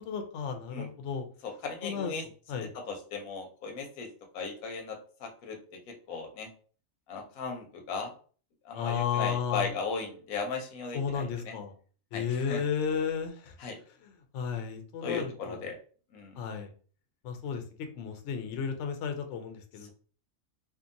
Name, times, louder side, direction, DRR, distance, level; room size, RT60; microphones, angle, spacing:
voice 1, 0.0-1.3 1.8-2.1 2.5-2.7 8.7-9.7 10.9-11.7 12.1-13.5 14.3-15.6 16.4-16.7 17.2-19.9, left 7 dB, 65° left, 5 dB, 0.8 m, -33 dB
voice 2, 1.4-2.2 2.9-4.1 4.3-5.6 5.9-6.5 7.1-8.1 8.6-11.5 12.1-12.6 13.6-13.8 15.0-15.8 16.1-16.4, left 4 dB, 90° left, 3 dB, 1.1 m, -37 dB
2.7 x 2.5 x 2.5 m, 0.41 s
omnidirectional pair, 1.4 m